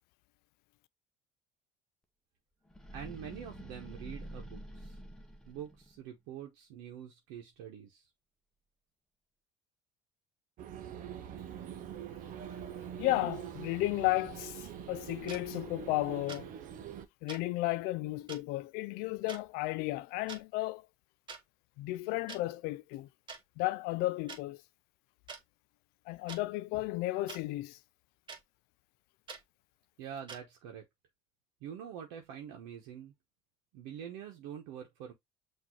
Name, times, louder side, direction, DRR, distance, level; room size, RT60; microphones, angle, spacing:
sound 1, 2.7-6.0, right 1 dB, 5° left, 0.9 m, -47 dB
voice 1, 2.9-5.0 5.5-8.0 30.0-30.9 31.6-33.1 33.7-35.1, right 9 dB, 85° right, 1.0 m, -45 dB
sound 2, 10.6-17.1, right 9 dB, 55° right, 0.8 m, -44 dB
voice 2, 13.0-16.5 17.2-20.9 21.8-23.1 23.6-24.6 26.1-27.8, left 18 dB, 75° left, 0.4 m, -33 dB
sound 3, 15.3-15.4 16.3-16.4 17.3-17.4 18.3-18.4 19.3-19.4 20.1-20.4 21.3-21.4 22.3-22.4 23.3-23.4 24.3-24.4 25.3-25.4 26.3-26.4 27.3-27.4 28.3-28.4 29.3-29.4 30.3-30.4, right 5 dB, 30° right, 1.0 m, -45 dB
6.0 x 2.7 x 3.0 m
supercardioid pair, 95°, 16 cm